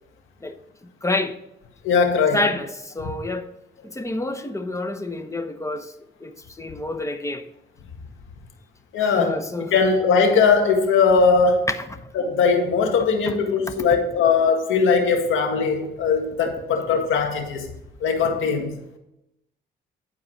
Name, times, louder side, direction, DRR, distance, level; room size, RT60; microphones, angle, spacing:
voice 1, 0.8-1.4 2.3-3.5 3.8-5.9 6.2-7.5 9.0-9.7 11.7-12.1 13.3-13.4, left 2 dB, 15° left, 1.0 m, -28 dB
voice 2, 1.8-2.4 3.0-3.1 8.9-9.4 9.7-11.7 12.2-17.7 18.0-18.7, left 5 dB, 80° left, 1.9 m, -20 dB
11.0 x 4.7 x 6.3 m
cardioid pair, 90°, 20 cm